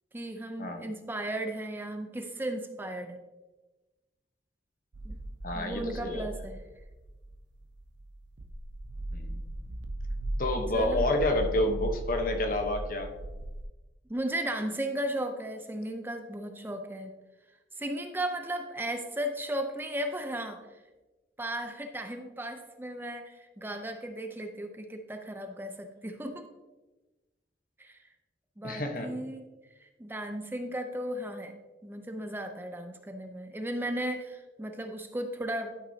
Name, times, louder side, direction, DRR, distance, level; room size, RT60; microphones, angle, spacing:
voice 1, 0.1-3.2 5.0-5.2 5.5-6.6 10.7-11.0 14.1-17.1 17.8-20.6 21.4-26.4 27.8-28.0 28.6-29.4 29.8-31.5 31.8-35.8, right 1 dB, 10° right, 5 dB, 0.5 m, -35 dB
sound 1, 4.9-13.6, right 1 dB, 85° right, 0.6 m, -37 dB
voice 2, 5.4-6.2 9.1-9.4 10.4-13.1 28.6-29.1, left 1 dB, 50° left, 4 dB, 1.0 m, -29 dB
11.5 x 5.9 x 2.7 m, 1.2 s
head